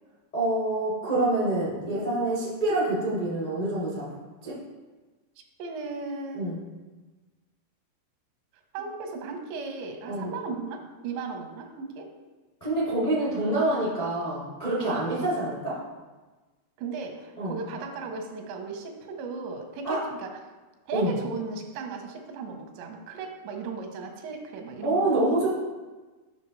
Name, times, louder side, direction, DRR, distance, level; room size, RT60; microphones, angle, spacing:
voice 1, 0.3-4.0 4.4-4.6 6.3-6.5 10.1-10.3 12.6-15.8 17.4-17.5 19.8-20.0 20.9-21.1 24.8-25.5, right 2 dB, 40° left, -9 dB, 0.5 m, -26 dB
voice 2, 5.6-6.6 8.7-12.1 15.1-15.3 16.8-20.4 20.9-25.4, right 4 dB, 85° right, 4 dB, 3.1 m, -36 dB
8.6 x 5.9 x 3.1 m, 1.3 s
omnidirectional pair, 4.9 m